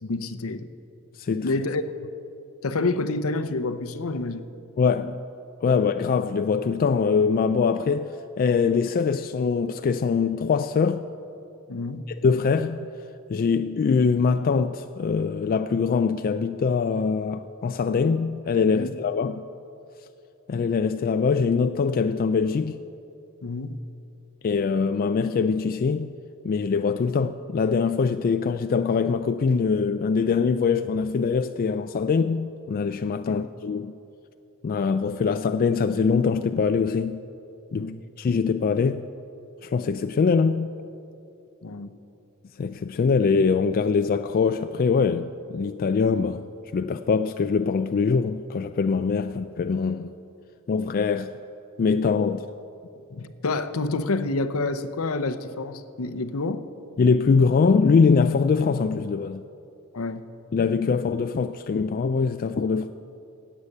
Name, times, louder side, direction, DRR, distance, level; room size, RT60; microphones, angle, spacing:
voice 1, 0.0-0.7 1.4-1.8 2.6-4.5 11.7-12.1 18.7-18.9 23.4-23.8 33.3-33.5 37.7-38.0 41.6-41.9 53.1-56.6 59.9-60.3, left 3 dB, 70° left, 0.7 m, -28 dB
voice 2, 1.2-1.5 4.8-5.2 5.6-8.1 8.4-11.0 12.2-12.9 13.3-19.4 20.5-22.8 24.4-26.2 26.4-33.9 34.6-37.2 37.7-37.9 38.2-39.0 39.6-40.7 42.6-46.5 46.7-50.1 50.7-51.3 51.8-52.4 57.0-59.4 60.5-62.9, left 5 dB, 40° left, 0.3 m, -23 dB
17.0 x 8.1 x 6.7 m
head